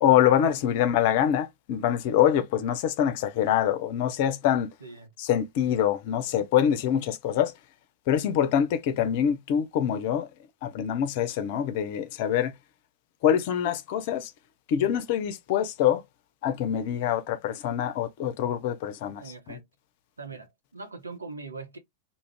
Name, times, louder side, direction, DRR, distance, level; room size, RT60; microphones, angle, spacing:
voice 1, 0.0-4.7 5.2-7.5 8.1-10.3 10.6-12.5 13.2-14.3 14.7-16.0 16.4-19.2 19.5-19.6, left 10 dB, 50° left, 0.4 m, -25 dB
voice 2, 19.2-19.6 20.2-21.8, right 4 dB, 80° right, 0.7 m, -41 dB
2.4 x 2.0 x 3.3 m
figure-of-eight pair, 90°, 0 cm